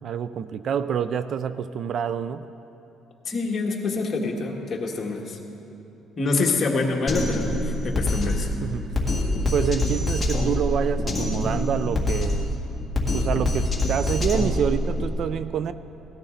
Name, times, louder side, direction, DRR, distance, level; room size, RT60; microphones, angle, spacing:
voice 1, 0.0-2.5 8.6-8.9 9.5-12.5 13.1-15.7, right 7 dB, 50° right, 13 dB, 0.3 m, -27 dB
voice 2, 3.2-5.4 6.2-8.5, left 3 dB, 30° left, 0 dB, 1.6 m, -26 dB
Drum kit, 7.1-15.1, left 1 dB, 10° left, 1.8 m, -25 dB
18.0 x 13.5 x 3.9 m, 2.8 s
cardioid pair, 145°, 0 cm